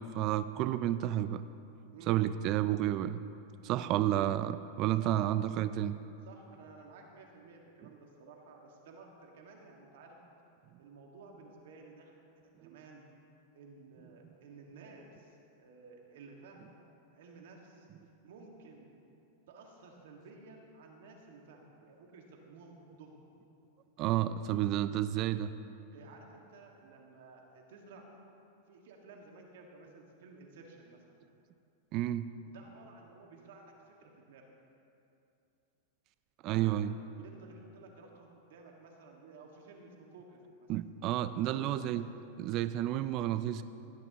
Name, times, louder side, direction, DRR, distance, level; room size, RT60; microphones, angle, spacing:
voice 1, 0.0-1.4 2.1-3.2 3.6-6.0 12.6-12.8 24.0-25.5 31.9-32.3 36.4-36.9 40.7-42.0 42.4-43.6, right 13 dB, 45° right, 13 dB, 0.3 m, -31 dB
voice 2, 6.2-10.2 10.8-13.1 13.5-17.9 18.2-18.9 19.5-23.2 25.9-28.2 28.7-31.0 32.5-34.5 36.5-36.8 37.2-40.7 41.4-42.0, right 3 dB, 70° right, 1 dB, 1.8 m, -54 dB
17.0 x 10.5 x 3.0 m, 2.7 s
hypercardioid pair, 130°, 0 cm